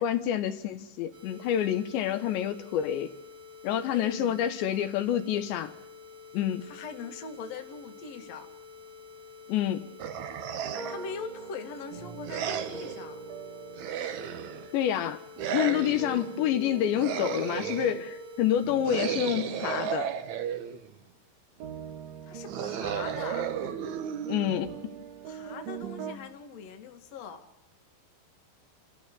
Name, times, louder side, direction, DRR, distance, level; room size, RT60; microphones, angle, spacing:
voice 1, 0.0-3.1 3.6-5.7 6.3-6.6 9.5-9.9 14.7-15.2 15.5-20.1 24.3-24.7, left 10 dB, 75° left, 8 dB, 3.4 m, -28 dB
sound 1, 1.1-19.0, left 5 dB, 45° right, 4.0 m, -49 dB
voice 2, 3.9-4.8 6.6-8.5 10.9-13.2 22.2-23.5 25.2-27.5, left 5 dB, 45° left, 5 dB, 2.6 m, -42 dB
sound 2, 10.0-11.1 12.3-13.0 13.8-14.7 15.4-16.3 16.9-18.0 18.8-20.9 22.5-24.9, right 9 dB, 65° right, 1.9 m, -34 dB
sound 3, 10.6-14.9 15.4-21.0 21.6-26.1, right 6 dB, 80° right, 6.1 m, -42 dB
29.0 x 15.0 x 8.4 m, 0.83 s
omnidirectional pair, 5.3 m